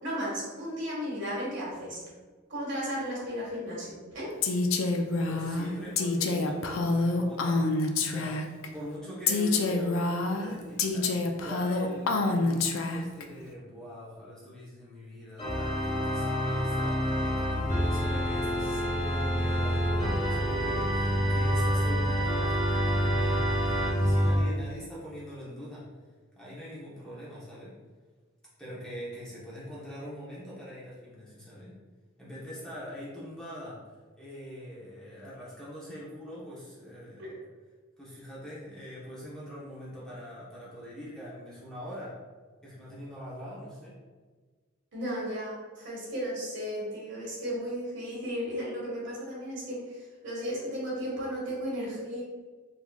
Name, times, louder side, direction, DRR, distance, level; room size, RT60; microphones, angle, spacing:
voice 1, 0.0-2.0 2.5-4.3 37.2-37.4 44.9-52.2, equal, 65° right, -6 dB, 1.5 m, -35 dB
Female speech woman speaking, 4.4-8.7 9.3-13.2, left 3 dB, 70° left, 0.4 m, -27 dB
voice 2, 5.3-7.6 8.0-11.1 11.4-25.9 26.4-27.7 28.6-31.8 32.2-33.8 34.2-37.3 38.0-42.2 42.6-44.0, equal, 5° left, -9 dB, 0.8 m, -43 dB
Organ, 15.4-24.5, equal, 30° left, 1.2 m, -27 dB
4.0 x 2.9 x 2.3 m, 1.4 s
head